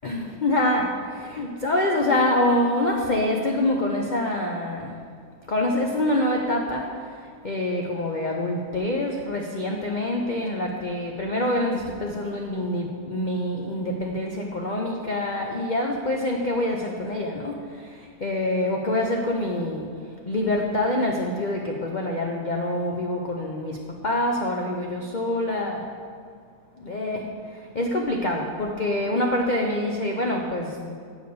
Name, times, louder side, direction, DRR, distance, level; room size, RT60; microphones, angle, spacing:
voice 1, 0.0-5.0 5.5-19.9 20.3-25.9 26.8-30.9, left 1 dB, 70° left, 1 dB, 0.4 m, -26 dB
7.9 x 4.9 x 6.7 m, 2.1 s
omnidirectional pair, 1.8 m